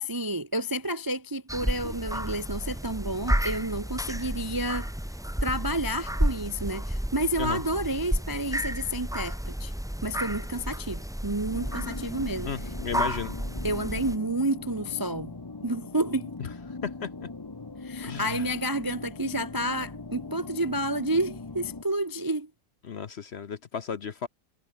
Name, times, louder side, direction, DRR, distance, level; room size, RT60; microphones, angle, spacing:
voice 1, 0.0-4.9 5.4-9.7 10.0-12.5 13.6-15.3 15.6-16.3 17.8-22.5, right 1 dB, 25° right, 0.5 m, -30 dB
sound 1, 1.5-14.2, equal, ahead, 1.0 m, -31 dB
sound 2, 11.5-21.8, left 3 dB, 20° left, 0.7 m, -40 dB
voice 2, 12.4-13.4 16.8-17.3 18.0-18.5 22.8-24.3, left 6 dB, 50° left, 1.0 m, -34 dB
omnidirectional pair, 1.7 m